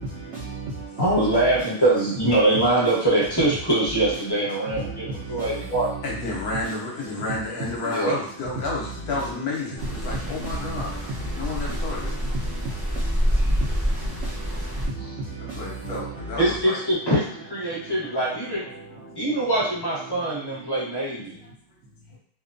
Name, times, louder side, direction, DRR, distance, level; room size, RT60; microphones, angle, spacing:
voice 1, 0.0-1.3 4.3-6.0 9.9-16.4 17.6-18.4 18.7-19.5 20.0-20.7 21.2-21.5, right 2 dB, 70° right, 0.6 m, -36 dB
voice 2, 1.0-5.9 7.8-8.1 15.0-15.1 16.4-18.6 19.1-21.4, right 2 dB, 20° left, 0.7 m, -23 dB
voice 3, 6.0-12.2 13.3-13.6 14.6-14.8 15.4-16.8 18.9-19.0 21.4-21.5 22.1-22.2, left 2 dB, 70° left, 1.0 m, -31 dB
sound 1, 9.8-14.9, equal, 20° right, 0.4 m, -27 dB
2.8 x 2.2 x 2.5 m
omnidirectional pair, 1.9 m